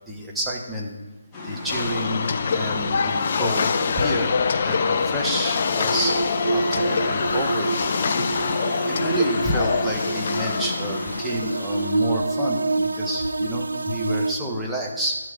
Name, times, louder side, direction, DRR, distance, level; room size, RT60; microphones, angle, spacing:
voice 1, 0.1-0.9 1.5-2.3 2.5-4.3 4.6-6.1 6.5-7.7 8.9-15.2, equal, 5° right, -4 dB, 1.4 m, -29 dB
sound 1, 1.3-11.2, left 2 dB, 15° left, 1.7 m, -34 dB
sound 2, 1.7-12.1, left 5 dB, 40° left, 0.5 m, -25 dB
sound 3, 5.7-14.3, right 3 dB, 70° right, 0.6 m, -27 dB
12.0 x 6.3 x 5.1 m, 1.2 s
figure-of-eight pair, 150°, 0 cm